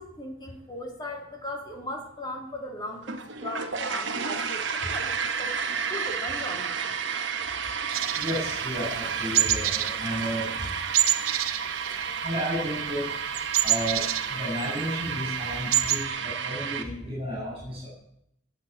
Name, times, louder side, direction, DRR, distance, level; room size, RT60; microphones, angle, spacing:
voice 1, 0.0-5.6 5.9-6.8, left 1 dB, 20° left, 2 dB, 2.5 m, -38 dB
sound 1, 3.0-16.8, right 6 dB, 55° right, 1.3 m, -31 dB
sound 2, 7.9-9.0 9.3-10.0 10.2-10.4 10.9-12.5 12.7-14.8 15.2-15.3 15.5-16.0, right 12 dB, 80° right, 1.0 m, -26 dB
voice 2, 8.2-10.7 12.2-13.1 13.6-17.9, equal, 25° right, -7 dB, 7.3 m, -32 dB
16.0 x 8.3 x 7.0 m, 0.76 s
head